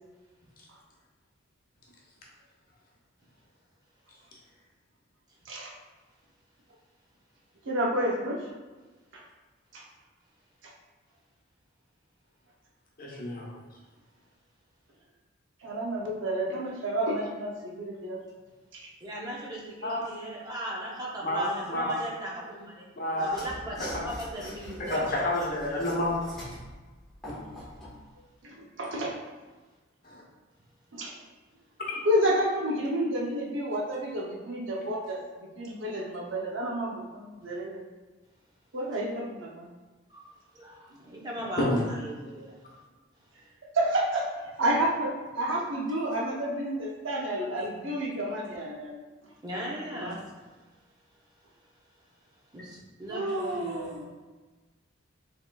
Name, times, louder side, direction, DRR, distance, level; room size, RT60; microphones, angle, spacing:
voice 1, 7.6-8.5 9.1-9.2 9.7-9.8 10.6-10.7 15.6-18.2 18.7-18.9 28.2-29.1 30.9-31.2 32.0-37.8 38.7-39.7 43.7-44.3 44.6-49.0 49.9-50.2 53.1-54.1, right 1 dB, 65° right, -2 dB, 0.7 m, -30 dB
voice 2, 13.0-13.5 19.8-20.0 21.2-22.0 23.0-23.4 23.9-24.0 24.9-26.1 30.0-30.2 41.6-41.8, left 1 dB, 45° left, -4 dB, 0.9 m, -29 dB
voice 3, 19.0-22.9 23.2-25.3 40.1-40.3 40.5-42.6 49.4-50.3 52.5-54.0, right 1 dB, 20° right, -4 dB, 0.7 m, -38 dB
Mechanisms / Sawing, 23.3-28.0, equal, ahead, 1.1 m, -43 dB
4.7 x 3.6 x 2.3 m, 1.3 s
head